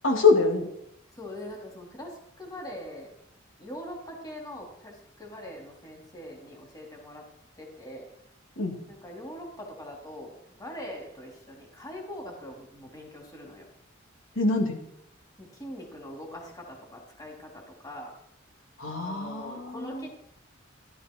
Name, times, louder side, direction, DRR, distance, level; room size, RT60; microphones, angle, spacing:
voice 1, 0.0-0.7 8.6-8.8 14.4-14.8 18.8-20.1, left 4 dB, 80° left, 2 dB, 2.9 m, -24 dB
voice 2, 1.2-3.1 3.6-7.2 7.6-8.1 8.9-13.7 15.4-18.1 19.0-20.1, left 1 dB, 20° left, 0 dB, 3.2 m, -42 dB
16.0 x 12.5 x 4.6 m, 0.75 s
head